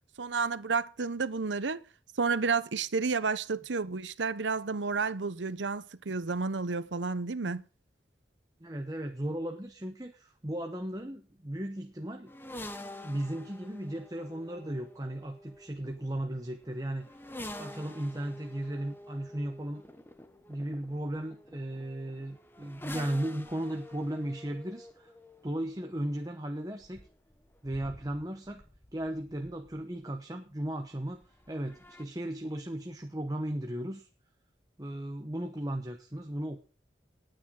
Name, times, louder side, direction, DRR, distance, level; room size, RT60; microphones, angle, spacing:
voice 1, 0.2-1.8 2.2-7.6, right 4 dB, 85° right, 0.8 m, -31 dB
voice 2, 8.6-12.3 13.0-17.1 17.6-19.8 20.5-25.1 25.4-27.0 27.6-28.6 28.9-31.2 31.5-34.1 34.8-36.6, right 1 dB, 20° right, 1.0 m, -36 dB
sound 1, 12.3-30.0 31.1-32.0, left 1 dB, 10° left, 1.0 m, -48 dB
19.0 x 9.0 x 3.8 m
head